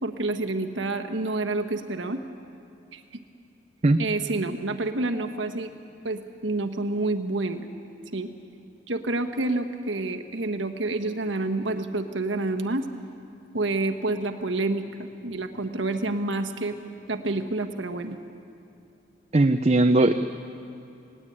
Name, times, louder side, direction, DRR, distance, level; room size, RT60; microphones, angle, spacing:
voice 1, 0.0-2.2 2.9-3.0 4.0-5.7 6.0-7.7 8.1-8.3 8.9-12.9 13.5-16.8 17.1-18.2, right 2 dB, 85° right, 6 dB, 1.4 m, -28 dB
voice 2, 19.3-20.1, right 2 dB, 35° right, 8 dB, 0.6 m, -18 dB
19.5 x 19.0 x 8.8 m, 2.8 s
head